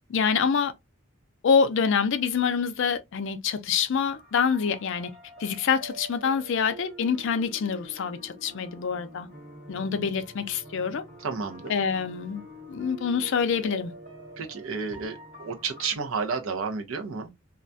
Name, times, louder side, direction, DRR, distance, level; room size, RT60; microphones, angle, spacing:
voice 1, 0.1-0.7 1.4-5.1 5.4-9.3 9.7-11.0 11.7-12.4 12.7-13.9, left 6 dB, 65° left, 0.4 m, -26 dB
sound 1, 4.1-16.0, equal, 35° right, 1.3 m, -46 dB
voice 2, 11.2-11.7 14.4-17.3, right 5 dB, 75° right, 0.6 m, -31 dB
2.3 x 2.2 x 2.5 m
head